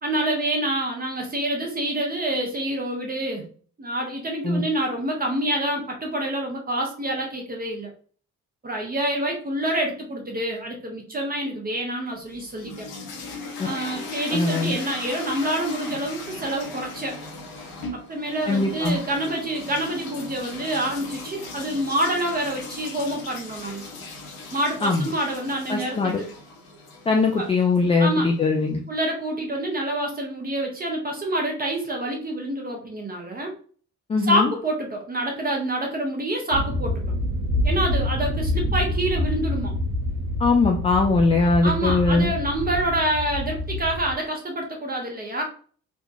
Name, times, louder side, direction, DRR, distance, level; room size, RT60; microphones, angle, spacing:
voice 1, 0.0-3.5 3.8-7.9 8.6-12.9 13.6-17.2 17.9-23.9 24.5-26.3 27.4-27.5 28.0-28.3 28.9-33.5 34.2-37.0 37.6-39.8 41.6-45.4, right 1 dB, 20° right, 1 dB, 1.1 m, -27 dB
sound 1, 12.2-28.2, left 3 dB, 60° left, 0.9 m, -38 dB
voice 2, 14.3-14.7 18.5-19.0 24.8-25.1 25.7-26.2 27.1-28.8 34.1-34.5 40.4-42.3, left 3 dB, 15° left, 2 dB, 0.4 m, -21 dB
sound 2, 36.5-44.1, left 1 dB, 75° right, 0.7 m, -27 dB
3.5 x 2.3 x 2.7 m, 0.43 s
figure-of-eight pair, 40°, 43 cm